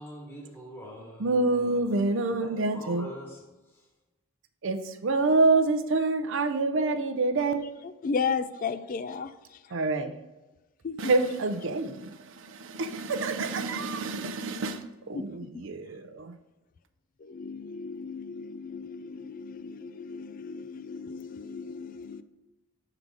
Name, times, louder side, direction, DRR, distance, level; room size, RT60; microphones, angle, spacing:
voice 1, 0.0-3.9, equal, 10° left, 1.2 m, -45 dB
voice 2, 1.2-3.1 4.6-7.7 9.7-10.2 11.0-16.3, right 3 dB, 60° right, 0.5 m, -27 dB
voice 3, 7.8-9.3 10.8-11.0 15.1-15.5 17.2-22.2, left 5 dB, 40° left, 0.3 m, -34 dB
7.4 x 3.9 x 4.7 m
head